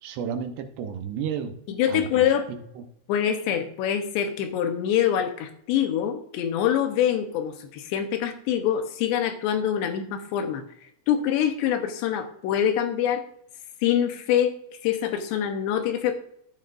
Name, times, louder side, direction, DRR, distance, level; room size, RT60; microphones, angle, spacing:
voice 1, 0.0-1.5 1.9-2.3 2.8-2.9, right 7 dB, 80° right, 5 dB, 3.2 m, -32 dB
voice 2, 1.7-2.5 3.1-10.6 11.1-13.2 13.8-14.6 14.8-16.1, left 9 dB, 85° left, 7 dB, 3.2 m, -25 dB
13.0 x 9.0 x 2.6 m, 0.71 s
omnidirectional pair, 4.8 m